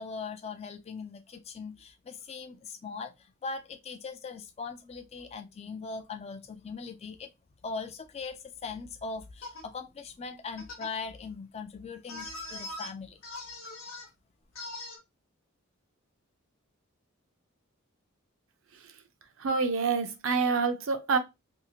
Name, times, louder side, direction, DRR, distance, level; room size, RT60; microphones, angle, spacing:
voice 1, 0.0-7.3 7.6-13.2, left 4 dB, 30° left, 0.3 m, -40 dB
sound 1, 9.4-9.6 10.6-10.9 12.1-12.9 13.2-14.1 14.5-15.0, left 2 dB, 75° left, 1.0 m, -41 dB
voice 2, 19.4-21.2, right 4 dB, 65° right, 0.5 m, -27 dB
2.7 x 2.4 x 2.7 m
head